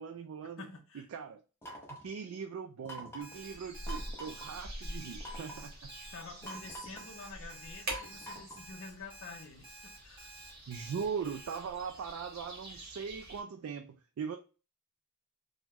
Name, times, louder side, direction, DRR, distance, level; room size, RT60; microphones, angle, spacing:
voice 1, 0.0-0.6 0.9-1.4 1.9-5.7 10.7-14.4, right 6 dB, 70° right, 0.3 m, -40 dB
voice 2, 0.6-1.1 6.1-10.3, left 4 dB, 60° left, 0.5 m, -48 dB
sound 1, 1.6-2.1 2.9-3.4 3.9-4.5 5.2-5.7 6.4-7.1 7.9-8.7, right 1 dB, 10° left, 0.6 m, -46 dB
Alarm, 3.2-11.6, right 2 dB, 25° right, 1.1 m, -52 dB
sound 2, 3.3-13.4, right 1 dB, 45° right, 1.1 m, -46 dB
3.5 x 2.1 x 2.8 m
head